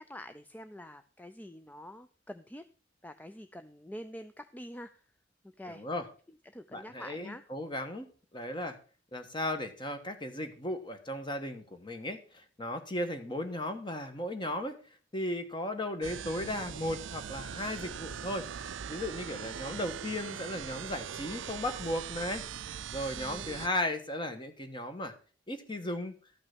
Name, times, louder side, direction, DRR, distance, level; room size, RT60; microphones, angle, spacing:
voice 1, 0.0-2.6 3.0-5.0 5.6-5.8 6.3-7.4 21.1-21.8 23.2-23.7, left 1 dB, 10° left, 10 dB, 0.4 m, -47 dB
voice 2, 5.7-6.1 6.7-8.8 9.1-14.7 15.1-25.1 25.5-26.1, left 1 dB, 25° left, 8 dB, 1.4 m, -36 dB
sound 1, 16.0-23.7, right 8 dB, 80° right, 0.5 m, -41 dB
13.0 x 6.0 x 6.0 m, 0.38 s
head